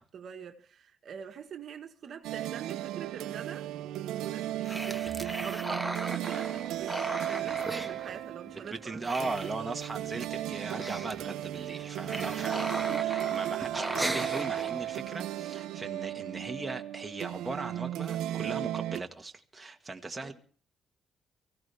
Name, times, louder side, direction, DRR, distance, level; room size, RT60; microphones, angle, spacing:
voice 1, 0.1-9.3 20.2-20.3, right 7 dB, 60° right, 1.6 m, -44 dB
sound 1, 2.2-19.0, right 13 dB, 90° right, 0.7 m, -35 dB
sound 2, 4.6-8.6 8.9-10.0 10.3-10.4 10.6-11.2 11.7-15.1, right 1 dB, 5° right, 1.4 m, -37 dB
voice 2, 8.7-20.3, right 3 dB, 20° right, 1.9 m, -38 dB
23.5 x 16.0 x 3.5 m
cardioid pair, 90°, 0 cm